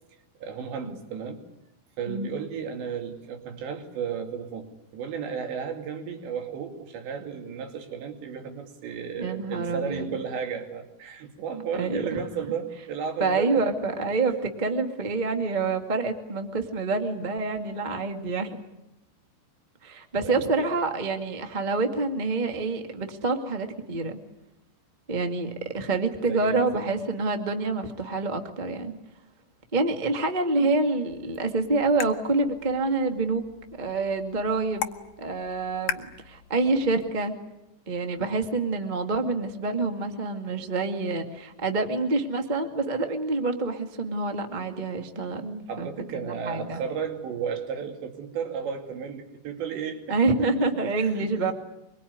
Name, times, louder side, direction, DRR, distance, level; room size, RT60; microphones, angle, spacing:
voice 1, 0.4-1.5 2.0-4.7 4.9-13.6 20.2-20.8 26.3-26.9 45.7-51.5, right 6 dB, 75° right, 4 dB, 4.8 m, -34 dB
voice 2, 9.2-10.1 11.7-12.2 13.2-18.6 19.8-24.2 25.1-28.9 29.7-33.4 33.8-34.9 35.2-37.3 37.9-46.8 50.1-51.5, right 3 dB, 40° right, 5 dB, 0.6 m, -27 dB
sound 1, 31.1-37.1, left 10 dB, 70° left, 1.8 m, -39 dB
25.0 x 23.0 x 9.5 m, 0.89 s
omnidirectional pair, 5.1 m